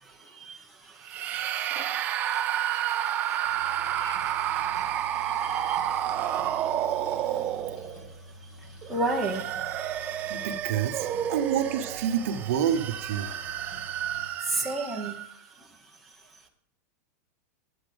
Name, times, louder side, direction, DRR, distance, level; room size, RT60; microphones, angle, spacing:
voice 1, 0.0-1.2 1.6-1.9 2.4-2.5 3.0-3.1 3.6-4.2 5.1-6.0 8.9-10.4 14.5-15.2 15.6-15.7, right 2 dB, ahead, -2 dB, 1.0 m, -34 dB
sound 1, 1.0-8.1 8.8-15.3, right 11 dB, 20° right, 0.4 m, -30 dB
sound 2, 3.4-14.3, left 1 dB, 40° left, 2.5 m, -48 dB
voice 2, 10.3-13.3, right 9 dB, 50° right, 6 dB, 1.1 m, -28 dB
9.9 x 7.9 x 5.2 m, 0.67 s
supercardioid pair, 180°, 9 cm